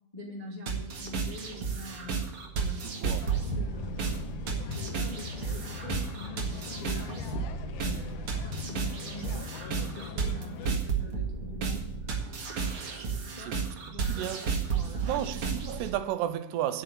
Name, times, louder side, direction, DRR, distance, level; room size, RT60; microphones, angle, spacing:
voice 1, 0.1-2.2 2.5-3.0 3.3-7.2 7.8-9.5 9.9-11.9 13.1-13.6 13.9-15.1, left 1 dB, 20° left, 1.0 m, -45 dB
sound 1, 0.7-15.9, right 5 dB, 45° right, 2.0 m, -33 dB
voice 2, 2.8-3.2 10.7-10.8 13.5-13.6 14.1-14.5 15.0-16.8, right 12 dB, 85° right, 2.9 m, -33 dB
sound 2, 3.1-10.8, left 7 dB, 75° left, 2.0 m, -40 dB
9.0 x 8.9 x 8.6 m
omnidirectional pair, 4.8 m